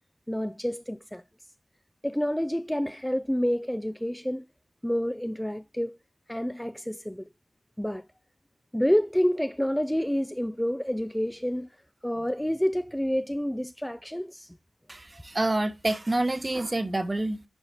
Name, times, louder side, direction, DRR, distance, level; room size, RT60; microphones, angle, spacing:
voice 1, 0.3-1.2 2.0-4.4 4.8-6.0 6.3-7.3 7.8-8.0 8.7-11.7 12.0-14.6, equal, 5° left, 0.4 m, -28 dB
voice 2, 14.9-17.4, right 2 dB, 25° right, 1.0 m, -27 dB
11.0 x 4.1 x 4.8 m
cardioid pair, 65°, 0 cm